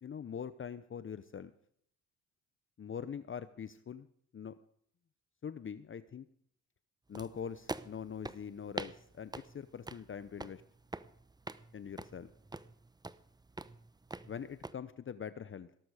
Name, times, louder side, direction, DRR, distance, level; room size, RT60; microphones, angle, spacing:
voice 1, 0.0-1.5 2.8-4.1 4.3-4.6 5.4-6.3 7.1-10.6 11.7-12.3 14.3-15.7, left 7 dB, 35° left, 13 dB, 0.8 m, -43 dB
sound 1, 7.1-14.7, right 2 dB, 10° right, 0.8 m, -46 dB
18.5 x 11.5 x 4.9 m, 0.66 s
supercardioid pair, 70°, 35 cm